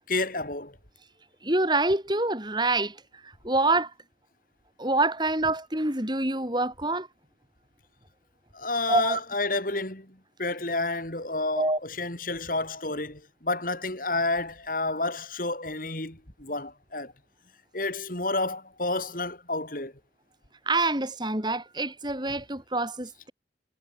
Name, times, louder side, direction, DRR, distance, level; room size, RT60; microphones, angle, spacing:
voice 1, 0.1-0.8 8.5-17.1 17.7-19.9, left 2 dB, 50° left, 4.9 m, -30 dB
voice 2, 1.4-3.0 3.4-3.9 4.8-7.1 8.9-9.2 11.6-11.8 20.7-23.3, right 2 dB, 25° right, 7.2 m, -26 dB
head